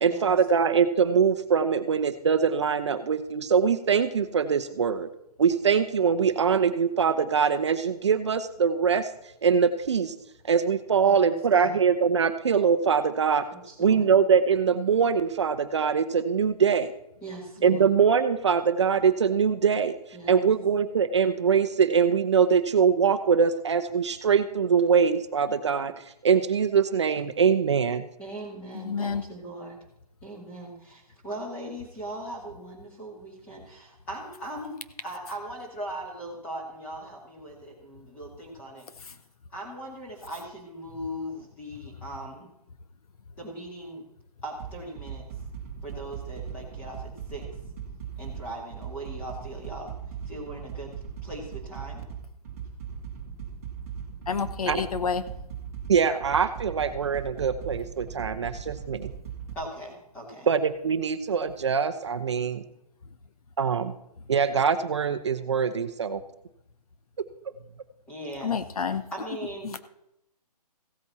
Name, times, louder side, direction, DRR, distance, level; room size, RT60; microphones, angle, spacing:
voice 1, 0.0-5.1 5.4-9.1 9.4-10.1 10.5-13.4 13.8-16.9 17.6-20.0 20.3-25.9 26.2-28.1 54.7-54.8 55.9-59.1 60.5-62.6 63.6-63.9 64.3-66.2, right 6 dB, 45° right, 10 dB, 0.7 m, -23 dB
voice 2, 11.0-11.8 13.5-14.1 17.2-17.9 20.1-20.5 28.2-29.8 30.2-39.2 39.5-42.5 43.4-44.0 44.4-45.2 45.8-47.5 48.2-49.9 50.3-50.9 51.2-52.0 59.5-60.5 68.1-68.5 68.9-69.8, right 1 dB, 5° left, -2 dB, 2.1 m, -39 dB
voice 3, 28.7-29.2 54.3-55.2 68.4-69.0 69.6-69.8, left 6 dB, 65° left, 12 dB, 1.0 m, -29 dB
sound 1, 44.6-59.5, right 7 dB, 20° right, 1.4 m, -39 dB
16.0 x 8.4 x 4.2 m, 0.81 s
hypercardioid pair, 175°, 20 cm